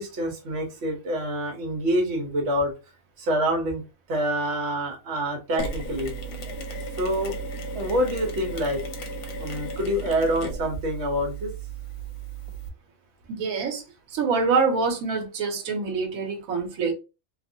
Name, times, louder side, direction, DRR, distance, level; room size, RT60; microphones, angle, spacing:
voice 1, 0.0-2.7 3.2-3.8 4.1-6.1 7.0-7.3 7.7-8.8 9.4-11.5, equal, 55° right, 1.0 m, -26 dB
Mechanisms, 5.6-12.7, right 3 dB, 80° left, 1.1 m, -35 dB
voice 2, 13.3-13.8 14.1-16.9, right 4 dB, 70° right, 1.1 m, -25 dB
2.8 x 2.5 x 2.6 m
omnidirectional pair, 1.5 m